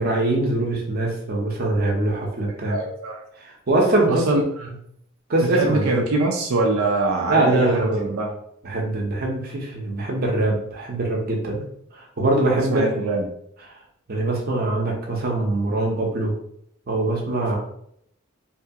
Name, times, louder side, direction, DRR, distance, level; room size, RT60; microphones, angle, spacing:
voice 1, 0.0-2.8 3.4-4.3 5.3-6.1 7.3-8.1 8.6-11.6 11.9-13.0 14.1-16.4 16.9-17.6, right 2 dB, 45° right, -1 dB, 0.7 m, -23 dB
voice 2, 2.7-3.2 4.1-4.4 5.5-8.3 12.7-13.3, right 2 dB, 85° right, 1 dB, 0.5 m, -23 dB
2.7 x 2.3 x 2.7 m, 0.70 s
head